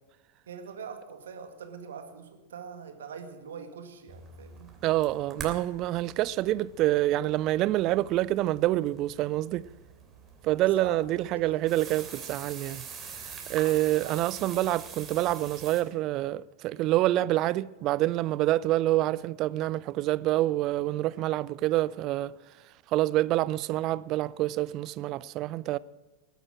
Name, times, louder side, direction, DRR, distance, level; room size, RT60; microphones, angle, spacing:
voice 1, 0.5-4.7 10.7-11.9 13.8-14.7, right 6 dB, 65° right, 1.9 m, -44 dB
sound 1, 4.1-15.8, right 6 dB, 20° right, 2.9 m, -45 dB
voice 2, 4.8-9.7 10.4-12.8 13.3-22.3 22.9-25.8, right 15 dB, 40° right, 0.4 m, -27 dB
20.0 x 9.2 x 6.2 m
figure-of-eight pair, 90°, 0 cm